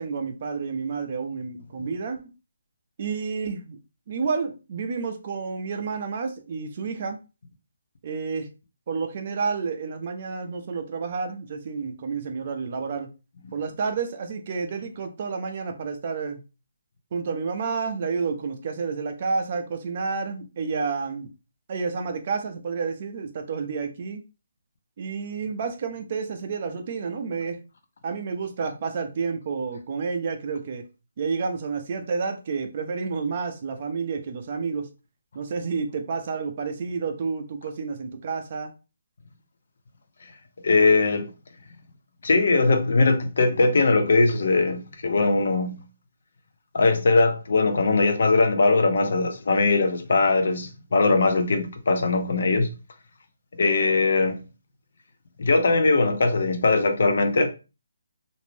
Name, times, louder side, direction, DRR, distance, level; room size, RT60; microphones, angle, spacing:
voice 1, 0.0-2.2 3.0-3.8 4.1-7.2 8.0-8.5 8.9-13.1 13.5-16.4 17.1-21.3 21.7-24.2 25.0-27.6 28.0-30.8 31.2-34.9 35.3-38.7, right 5 dB, 40° right, 0.4 m, -30 dB
voice 2, 40.6-41.3 42.2-45.8 46.7-52.7 53.6-54.4 55.4-57.5, left 3 dB, 60° left, 0.6 m, -20 dB
2.6 x 2.0 x 3.1 m
hypercardioid pair, 165°, 0 cm